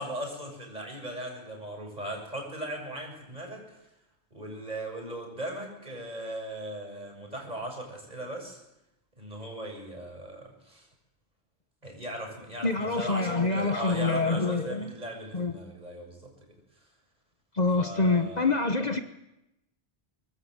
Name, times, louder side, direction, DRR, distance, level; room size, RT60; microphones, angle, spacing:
voice 1, 0.0-3.6 4.3-8.6 9.2-10.9 11.8-16.3 17.8-18.5, right 1 dB, 40° right, 2 dB, 7.1 m, -38 dB
voice 2, 12.6-14.9 15.3-15.6 17.5-19.0, left 3 dB, 45° left, 8 dB, 1.2 m, -26 dB
24.0 x 21.0 x 8.0 m, 0.90 s
omnidirectional pair, 1.1 m